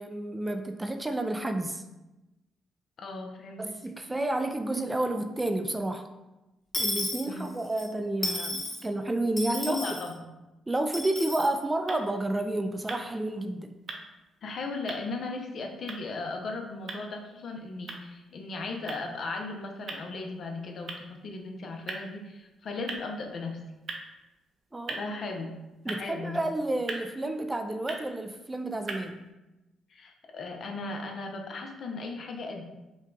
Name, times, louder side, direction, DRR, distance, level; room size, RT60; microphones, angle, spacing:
voice 1, 0.0-1.8 3.6-6.1 6.8-9.8 10.7-13.7 24.7-25.0 25.8-29.2, right 1 dB, 15° right, 7 dB, 0.3 m, -30 dB
voice 2, 3.0-3.6 7.3-7.5 9.7-10.3 14.4-23.6 24.9-25.5 25.9-26.4 29.9-32.6, left 3 dB, 55° left, 2 dB, 0.7 m, -37 dB
Dishes pots and pans / Coin (dropping), 6.7-7.8 8.2-8.8 9.4-10.1 10.9-11.5, left 1 dB, 20° left, 1.2 m, -32 dB
sound 1, 11.2-29.3, right 3 dB, 50° right, 0.7 m, -45 dB
5.3 x 2.4 x 3.8 m, 1.0 s
cardioid pair, 90°, 0 cm